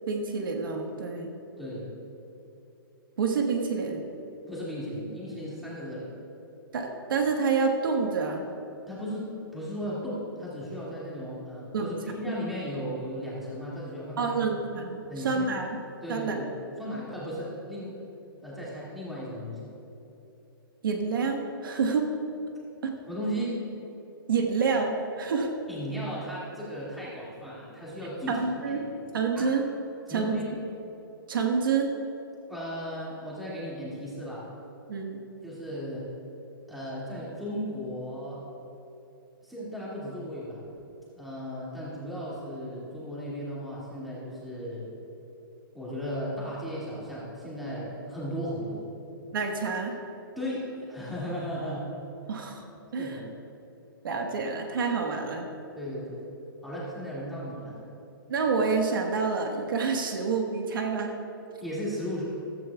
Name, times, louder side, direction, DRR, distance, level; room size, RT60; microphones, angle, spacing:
voice 1, 0.1-1.3 3.2-4.0 6.7-8.4 11.7-12.0 14.2-15.8 16.1-16.4 20.8-22.1 22.8-22.9 24.3-25.5 28.3-28.8 29.1-29.6 30.1-30.4 31.3-31.9 34.9-35.2 49.3-49.9 52.3-52.6 52.9-53.3 54.0-55.4 58.3-61.1, right 5 dB, 65° right, 2 dB, 1.4 m, -28 dB
voice 2, 1.6-1.9 4.5-6.1 8.9-14.5 15.1-15.6 16.0-16.5 16.8-17.9 18.4-19.7 23.1-23.5 25.7-28.4 28.7-28.8 29.3-29.5 30.1-30.5 32.5-34.4 35.4-36.0 36.7-38.4 39.4-40.6 41.1-44.8 45.7-48.8 50.4-51.8 53.0-53.2 55.7-56.2 56.6-57.8 61.6-62.2, equal, ahead, -8 dB, 2.2 m, -36 dB
15.0 x 13.5 x 2.3 m, 2.9 s
hypercardioid pair, 170°, 12 cm